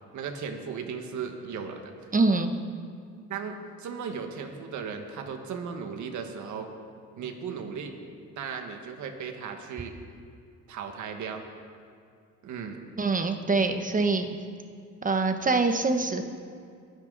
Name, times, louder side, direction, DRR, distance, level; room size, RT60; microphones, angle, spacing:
voice 1, 0.1-1.9 3.3-6.7 7.2-8.0 8.4-9.9 10.7-11.5 12.4-12.9, right 6 dB, 75° right, 5 dB, 1.7 m, -36 dB
voice 2, 2.1-2.5 13.0-14.3 15.0-16.2, right 3 dB, 25° right, 7 dB, 1.2 m, -24 dB
23.0 x 10.0 x 4.1 m, 2.3 s
cardioid pair, 90°, 30 cm